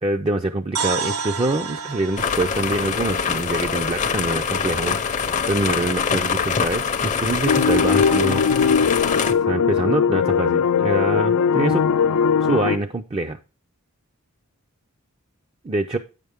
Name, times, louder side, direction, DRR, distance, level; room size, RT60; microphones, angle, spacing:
voice 1, 0.0-5.0 5.5-8.4 9.3-11.9 12.4-13.4 15.6-16.0, right 2 dB, 25° right, 5 dB, 0.4 m, -25 dB
sound 1, 0.7-4.7, right 5 dB, 75° right, 0.8 m, -31 dB
sound 2, 2.2-9.3, left 6 dB, 35° left, 0.6 m, -24 dB
sound 3, 7.4-12.8, left 6 dB, 85° left, 0.5 m, -19 dB
8.7 x 6.7 x 3.5 m, 0.33 s
head